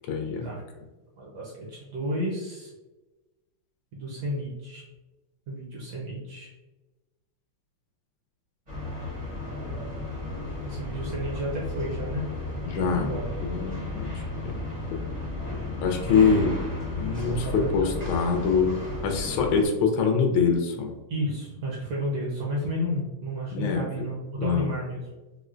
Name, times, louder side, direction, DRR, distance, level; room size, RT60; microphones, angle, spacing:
voice 1, 0.1-0.5 12.7-13.1 13.4-14.2 14.5-15.0 15.8-16.6 17.0-18.8 19.0-20.9 23.5-23.9 24.4-24.7, left 5 dB, 80° left, 3 dB, 1.3 m, -24 dB
voice 2, 1.2-2.7 3.9-4.9 5.5-6.5 10.6-12.2 12.6-13.2 16.1-16.4 17.3-17.7 21.1-25.0, equal, 70° right, -3 dB, 1.0 m, -32 dB
sound 1, 8.7-19.7, left 2 dB, 35° right, 0.6 m, -33 dB
4.2 x 2.1 x 2.4 m, 1.1 s
omnidirectional pair, 2.3 m